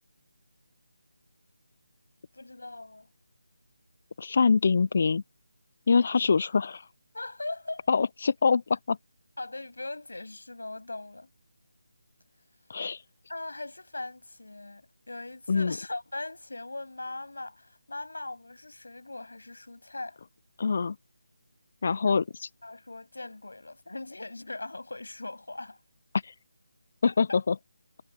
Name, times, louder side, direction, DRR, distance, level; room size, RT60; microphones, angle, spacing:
voice 1, 2.3-3.1 6.2-6.3 7.1-7.9 9.4-11.3 13.3-20.2 22.0-22.2 22.6-25.8 27.1-27.4, left 2 dB, 75° left, 7.6 m, -40 dB
voice 2, 4.2-5.2 5.9-6.8 7.9-9.0 12.7-13.0 15.5-15.8 20.6-21.0 21.8-22.2 26.2-26.3 27.0-27.6, left 5 dB, 45° left, 0.4 m, -24 dB
figure-of-eight pair, 155°, 0 cm